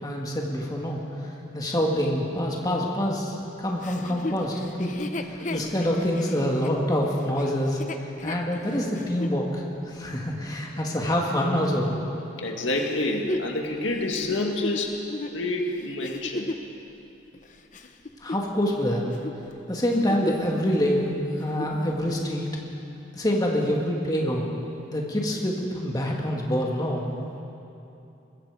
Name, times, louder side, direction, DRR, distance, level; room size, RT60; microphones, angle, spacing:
voice 1, 0.0-12.0 18.2-19.2 19.7-22.5 23.1-24.5 24.9-27.1, equal, 20° left, -1 dB, 2.3 m, -26 dB
Chuckle chortle, 3.8-9.4 10.0-10.1 12.7-16.7 17.3-18.8 19.1-19.4 19.8-20.5 20.8-20.9 21.3-21.8 22.5-22.6, left 2 dB, 40° left, 0.9 m, -35 dB
voice 2, 5.4-5.7 12.4-15.0 15.3-16.5, left 2 dB, 80° left, 1 dB, 2.1 m, -28 dB
23.5 x 21.5 x 5.1 m, 2.8 s
head